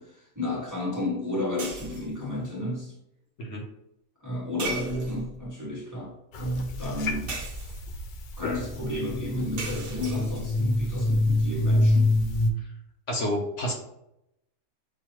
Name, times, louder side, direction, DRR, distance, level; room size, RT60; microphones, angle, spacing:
voice 1, 0.0-2.9 4.2-7.4 8.4-12.2, left 1 dB, 15° right, -5 dB, 1.1 m, -32 dB
sound 1, 1.6-2.2 4.6-5.4 7.3-8.1 9.6-10.6, right 3 dB, 60° right, 1.2 m, -37 dB
sound 2, 6.3-12.5, left 2 dB, 90° left, 0.4 m, -26 dB
voice 2, 13.1-13.7, equal, 60° left, -1 dB, 1.2 m, -29 dB
5.9 x 2.7 x 3.0 m, 0.83 s
omnidirectional pair, 1.4 m